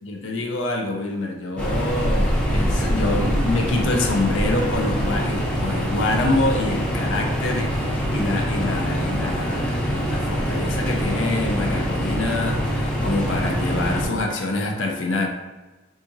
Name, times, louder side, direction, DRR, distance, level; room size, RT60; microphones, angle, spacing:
voice 1, 0.0-15.3, left 2 dB, 90° left, 1 dB, 0.5 m, -26 dB
sound 1, 1.6-14.1, equal, 5° left, 0.5 m, -24 dB
3.9 x 2.4 x 2.6 m, 1.1 s
head